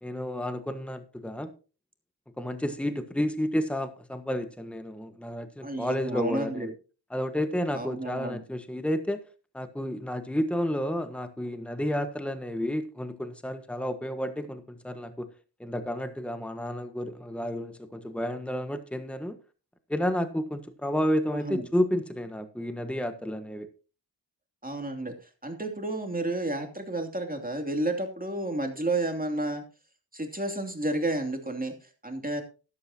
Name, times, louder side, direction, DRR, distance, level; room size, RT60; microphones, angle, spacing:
voice 1, 0.0-1.5 2.4-6.7 7.1-9.2 9.5-15.3 15.6-19.4 19.9-23.7, equal, 5° left, 9 dB, 1.4 m, -31 dB
voice 2, 5.6-6.7 7.7-8.4 21.3-21.6 24.6-25.1 25.4-29.6 30.1-32.4, right 2 dB, 20° right, 4 dB, 2.8 m, -31 dB
14.0 x 12.0 x 2.8 m, 0.34 s
cardioid pair, 55°, 43 cm